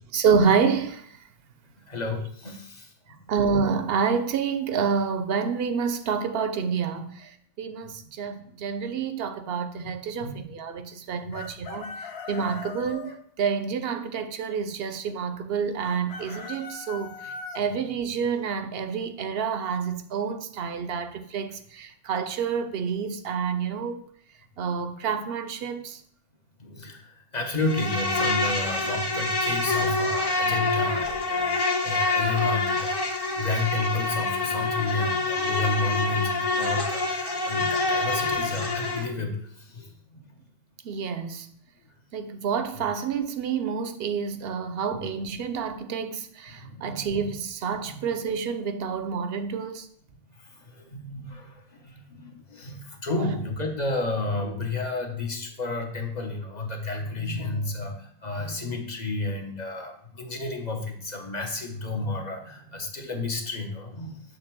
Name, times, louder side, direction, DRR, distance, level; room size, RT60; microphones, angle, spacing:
voice 1, 0.1-1.1 3.3-24.0 24.6-26.0 40.8-41.5 42.1-49.9, right 6 dB, 75° right, 0.8 m, -28 dB
voice 2, 1.9-3.2 10.2-10.3 11.3-11.4 26.6-40.2 44.9-45.1 46.6-47.3 47.8-48.0 50.4-64.2, left 2 dB, 45° left, 1.1 m, -31 dB
Chicken rooster, 11.3-13.2 15.8-17.6, left 4 dB, 80° left, 1.0 m, -39 dB
Insect, 27.6-39.1, left 3 dB, 25° left, 0.8 m, -26 dB
6.5 x 3.4 x 6.0 m
omnidirectional pair, 1.0 m